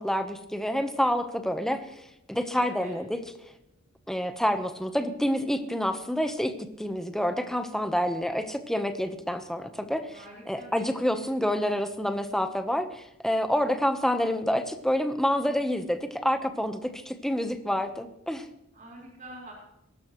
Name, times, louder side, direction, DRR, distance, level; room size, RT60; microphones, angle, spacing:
voice 1, 0.0-1.8 2.3-3.2 4.1-6.5 6.8-10.2 10.5-18.5, equal, ahead, 8 dB, 1.0 m, -28 dB
voice 2, 2.5-3.0 10.1-11.4 18.7-19.5, right 1 dB, 40° right, -3 dB, 4.5 m, -46 dB
23.0 x 12.0 x 3.1 m, 0.87 s
head